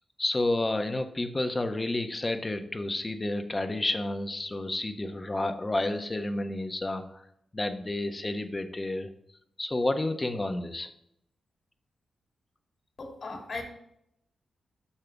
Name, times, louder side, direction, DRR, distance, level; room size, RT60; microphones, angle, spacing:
voice 1, 0.2-7.2 7.5-9.1 9.6-10.9, left 2 dB, 30° left, 7 dB, 1.3 m, -30 dB
voice 2, 13.0-13.6, left 3 dB, 60° left, 1 dB, 3.2 m, -37 dB
10.0 x 6.6 x 3.5 m, 0.75 s
supercardioid pair, 45°, 0 cm